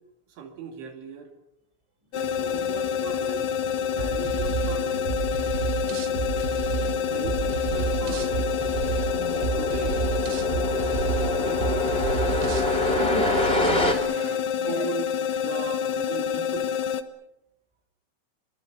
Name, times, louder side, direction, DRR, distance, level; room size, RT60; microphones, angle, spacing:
voice 1, 0.3-1.3 2.1-3.5 3.9-5.1 7.1-8.5 9.6-12.2 14.0-16.7, right 5 dB, 70° right, 4 dB, 4.7 m, -38 dB
sound 1, 2.1-17.0, left 8 dB, 70° left, 2.8 m, -27 dB
sound 2, 2.2-13.9, left 1 dB, 15° left, 3.0 m, -30 dB
sound 3, 4.0-12.7, right 9 dB, 90° right, 4.5 m, -31 dB
voice 2, 9.1-9.5 12.8-14.8, right 1 dB, 5° right, 4 dB, 5.3 m, -36 dB
28.0 x 23.5 x 7.1 m, 0.85 s
omnidirectional pair, 5.8 m